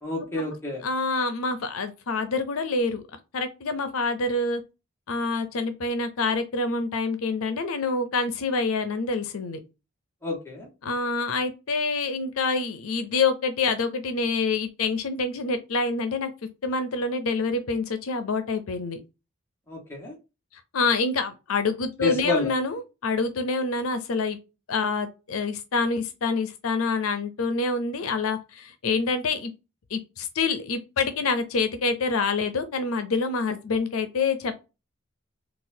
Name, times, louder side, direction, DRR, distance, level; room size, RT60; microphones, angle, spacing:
voice 1, 0.0-0.8 10.2-10.7 19.7-20.1 22.0-22.5, left 3 dB, 10° left, 1.1 m, -28 dB
voice 2, 0.8-3.0 3.3-4.6 5.1-9.6 10.8-16.3 16.6-19.0 20.7-24.4 24.7-29.5 29.9-34.6, left 4 dB, 90° left, 0.6 m, -26 dB
4.0 x 2.4 x 2.6 m
head